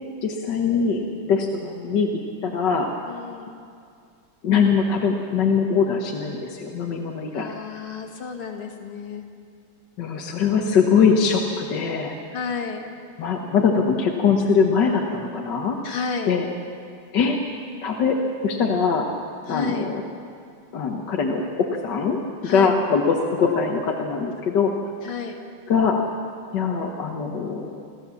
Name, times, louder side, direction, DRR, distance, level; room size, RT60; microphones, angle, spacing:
voice 1, 0.2-2.1 2.4-2.9 4.4-7.5 10.0-12.1 13.2-15.8 16.3-16.5 17.1-17.4 17.8-18.2 18.4-19.0 19.5-20.0 20.7-24.7 25.7-26.0 26.5-27.7, left 5 dB, 60° left, 1 dB, 1.8 m, -22 dB
voice 2, 3.1-3.6 7.3-9.3 12.3-12.9 15.8-16.4 19.5-19.9 22.4-22.7 25.0-25.4, left 5 dB, 80° left, 2 dB, 2.8 m, -31 dB
29.5 x 13.0 x 7.1 m, 2.4 s
omnidirectional pair, 2.3 m